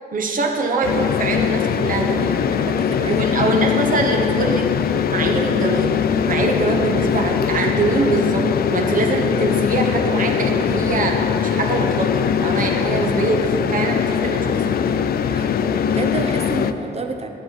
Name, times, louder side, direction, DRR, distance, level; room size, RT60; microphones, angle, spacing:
voice 1, 0.1-2.4 3.0-15.0, right 3 dB, 55° right, 2 dB, 1.2 m, -23 dB
sound 1, 0.8-16.7, left 8 dB, 65° left, 0.4 m, -21 dB
voice 2, 2.5-3.5 15.3-17.3, right 3 dB, 40° right, 6 dB, 0.7 m, -30 dB
12.5 x 8.3 x 4.1 m, 2.9 s
cardioid pair, 110°, 17 cm